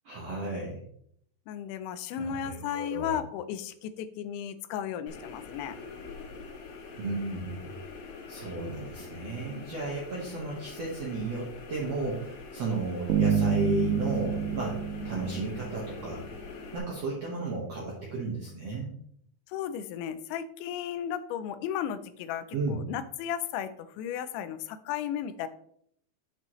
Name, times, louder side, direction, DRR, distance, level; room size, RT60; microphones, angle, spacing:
voice 1, 0.0-0.8 2.2-3.2 7.0-7.7 8.3-16.2 16.7-18.9 22.5-22.8, right 2 dB, 70° right, -4 dB, 1.6 m, -34 dB
voice 2, 1.5-5.8 19.5-25.5, left 9 dB, 90° left, 12 dB, 3.0 m, -35 dB
sound 1, 5.1-16.8, left 4 dB, 70° left, 3.7 m, -44 dB
Bass guitar, 13.1-16.2, right 6 dB, 90° right, 3.2 m, -28 dB
8.1 x 7.5 x 3.1 m, 0.67 s
omnidirectional pair, 5.1 m